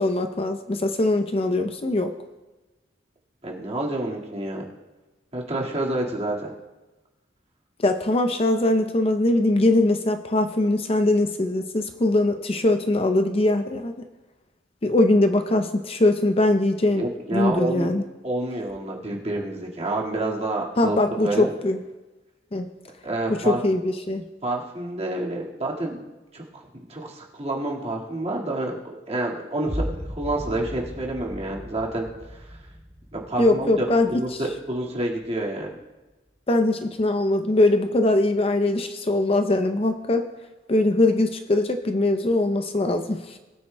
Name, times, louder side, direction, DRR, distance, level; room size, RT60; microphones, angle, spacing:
voice 1, 0.0-2.1 7.8-13.9 14.8-17.0 17.3-18.0 20.8-21.8 22.5-22.7 23.3-24.2 33.4-34.1 36.5-40.3 40.7-43.4, left 2 dB, 30° left, 6 dB, 0.6 m, -21 dB
voice 2, 3.4-4.6 5.3-6.5 16.9-17.9 18.2-21.5 23.0-23.6 24.4-26.0 26.3-32.6 33.1-35.7, right 2 dB, 35° right, -3 dB, 1.9 m, -29 dB
sound 1, 29.7-35.7, equal, 5° right, 2.6 m, -37 dB
20.5 x 9.2 x 2.2 m, 1.1 s
head